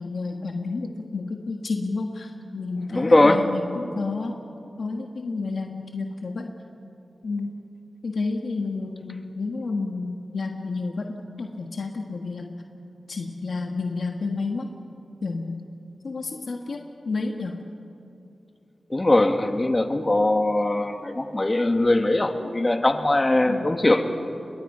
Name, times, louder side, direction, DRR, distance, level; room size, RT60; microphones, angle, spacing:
voice 1, 0.0-4.4 4.8-6.5 7.2-7.6 8.0-12.6 13.1-14.7 15.2-15.6 16.0-17.6 23.5-23.7, left 3 dB, 75° left, 3 dB, 1.5 m, -30 dB
voice 2, 2.9-3.4 18.9-24.0, left 2 dB, 30° left, 6 dB, 1.9 m, -20 dB
27.5 x 22.5 x 5.6 m, 2.7 s
cardioid pair, 55°, 0 cm